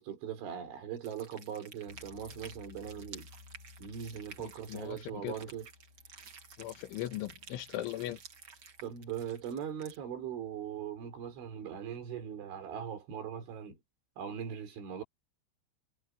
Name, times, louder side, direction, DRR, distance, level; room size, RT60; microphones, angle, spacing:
voice 1, 0.0-3.3 3.8-5.7 8.8-13.8 14.2-15.0, right 8 dB, 75° right, 6.1 m, -40 dB
sound 1, 1.0-10.0, right 6 dB, 50° right, 1.6 m, -53 dB
sound 2, 1.9-12.8, left 4 dB, 50° left, 4.0 m, -59 dB
voice 2, 4.7-5.3 6.6-8.2, left 14 dB, 85° left, 3.6 m, -38 dB
omnidirectional pair, 5.5 m